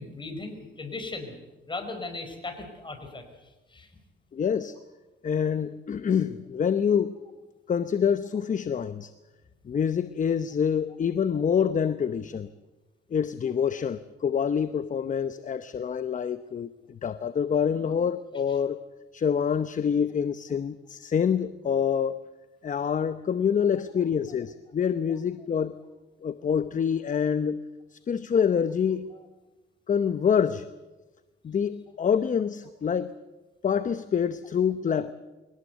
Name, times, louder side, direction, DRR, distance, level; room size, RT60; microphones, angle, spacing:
voice 1, 0.0-1.3 1.7-3.9 27.1-27.2, left 3 dB, 25° left, 6 dB, 4.9 m, -38 dB
voice 2, 4.3-4.8 5.2-7.1 7.7-9.1 9.6-12.5 13.1-18.8 19.1-22.2 22.6-25.8 26.2-27.6 27.9-29.1 29.9-30.7 31.4-33.2 33.6-35.1, left 7 dB, 40° left, 13 dB, 0.8 m, -26 dB
23.0 x 18.0 x 8.1 m, 1.1 s
cardioid pair, 90°, 20 cm